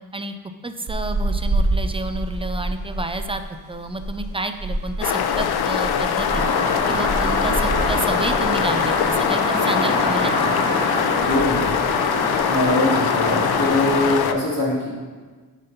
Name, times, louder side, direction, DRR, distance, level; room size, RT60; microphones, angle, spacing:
voice 1, 0.6-3.4 3.7-6.4 6.9-10.3, right 2 dB, 15° right, 8 dB, 0.4 m, -30 dB
sound 1, 0.9-9.4 9.6-9.9 10.3-11.1 11.4-11.8 12.1-12.2 12.3-12.8 13.3-13.8, right 2 dB, 35° right, 1.6 m, -28 dB
sound 2, 5.0-14.3, left 8 dB, 80° left, 0.6 m, -23 dB
sound 3, 6.3-14.2, left 1 dB, 15° left, 2.2 m, -25 dB
voice 2, 11.3-11.6 12.4-14.9, left 1 dB, 45° left, -12 dB, 2.6 m, -22 dB
8.6 x 4.2 x 5.4 m, 1.4 s
cardioid pair, 105°, 37 cm